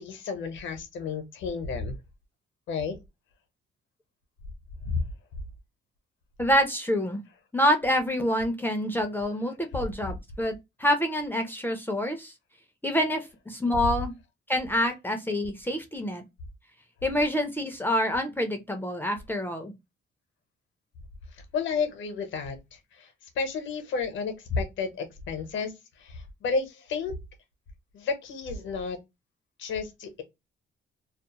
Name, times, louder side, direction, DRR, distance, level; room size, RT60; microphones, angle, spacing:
voice 1, 0.0-2.0 2.7-3.0 4.8-5.0 21.5-27.1 27.9-29.0 29.6-30.2, left 4 dB, 75° left, 0.8 m, -32 dB
voice 2, 6.4-7.2 7.5-10.5 10.8-12.3 12.8-14.1 14.5-16.2 17.0-19.7, equal, 10° left, 0.5 m, -27 dB
2.4 x 2.0 x 2.8 m
cardioid pair, 90°, 20 cm